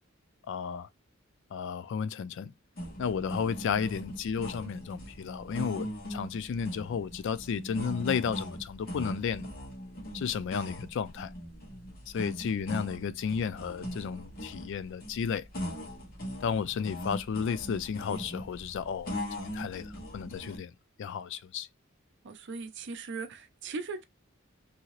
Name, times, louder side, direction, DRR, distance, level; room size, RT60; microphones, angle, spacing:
voice 1, 0.5-0.9 1.5-2.5 3.0-9.5 10.1-11.3 12.1-15.5 16.4-19.1 19.4-20.7 21.0-21.7, left 6 dB, 65° left, 0.3 m, -33 dB
sound 1, 2.8-20.6, equal, 45° left, 1.2 m, -40 dB
voice 2, 22.2-24.0, right 4 dB, 60° right, 0.5 m, -39 dB
2.8 x 2.7 x 3.0 m
head